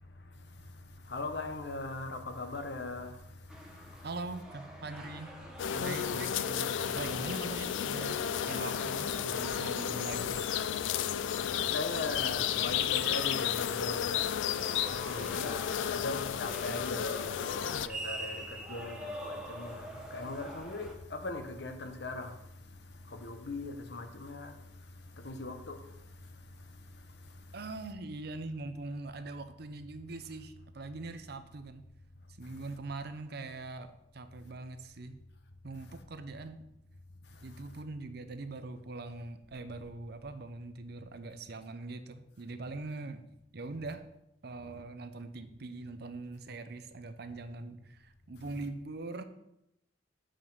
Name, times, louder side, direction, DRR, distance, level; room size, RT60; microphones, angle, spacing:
voice 1, 1.1-3.2 11.7-14.3 14.9-22.4 23.1-24.6 25.2-25.8, left 2 dB, 65° left, 1.0 m, -39 dB
sound 1, 3.5-21.0, equal, 5° right, 1.0 m, -46 dB
voice 2, 4.0-5.3 5.7-10.4 27.5-31.8 32.4-35.2 35.6-36.7 37.4-44.1 44.4-49.2, right 3 dB, 60° right, 0.6 m, -42 dB
sound 2, 5.6-17.9, left 9 dB, 85° left, 0.3 m, -33 dB
7.5 x 5.0 x 5.5 m
head